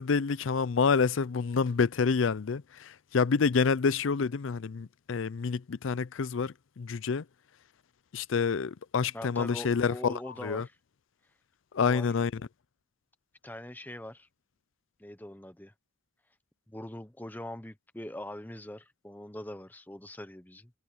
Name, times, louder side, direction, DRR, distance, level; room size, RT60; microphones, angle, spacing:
voice 1, 0.0-7.2 8.1-10.6 11.7-12.4, left 5 dB, 75° left, 0.5 m, -28 dB
voice 2, 9.1-10.8 11.8-12.1 13.4-14.3 15.0-15.7 16.7-20.7, left 1 dB, 10° left, 1.0 m, -42 dB
head